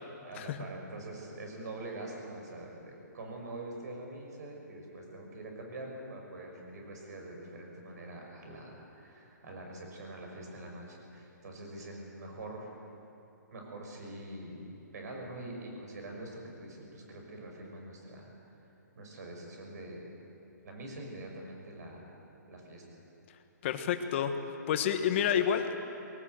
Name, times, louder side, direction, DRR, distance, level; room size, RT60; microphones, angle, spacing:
voice 1, 0.2-12.7 13.5-14.7 14.9-18.3 19.0-20.1 20.6-22.1 22.5-23.0, right 1 dB, 60° right, 1 dB, 5.9 m, -44 dB
voice 2, 23.6-24.3 24.7-25.8, left 8 dB, 40° left, 7 dB, 1.5 m, -29 dB
21.0 x 18.0 x 8.0 m, 2.9 s
hypercardioid pair, 155°, 10 cm